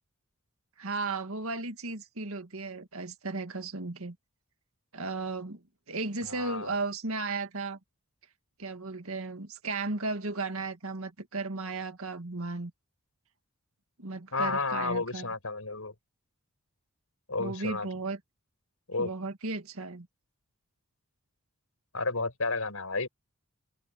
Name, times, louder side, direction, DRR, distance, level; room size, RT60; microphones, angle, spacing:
voice 1, 0.8-4.2 4.9-7.8 8.6-12.7 14.0-15.3 17.4-18.2 19.0-20.1, right 3 dB, 70° right, 2.0 m, -35 dB
voice 2, 6.2-6.8 14.3-15.9 17.3-17.9 18.9-19.1 21.9-23.1, left 3 dB, 70° left, 5.3 m, -32 dB
head